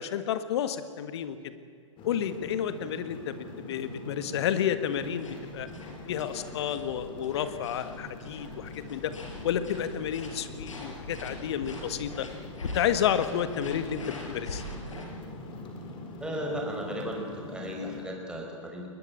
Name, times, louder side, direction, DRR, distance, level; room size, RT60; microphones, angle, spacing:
voice 1, 0.0-1.5 2.0-5.7 6.1-9.1 9.4-12.3 12.7-14.6, left 9 dB, 55° left, 12 dB, 1.7 m, -31 dB
sound 1, 2.0-18.0, left 2 dB, 30° left, 4.2 m, -43 dB
sound 2, 4.9-15.1, left 2 dB, 80° left, 5.7 m, -43 dB
voice 2, 16.2-18.9, equal, 5° right, 0 dB, 5.1 m, -35 dB
21.5 x 19.5 x 8.7 m, 2.3 s
figure-of-eight pair, 110°, 16 cm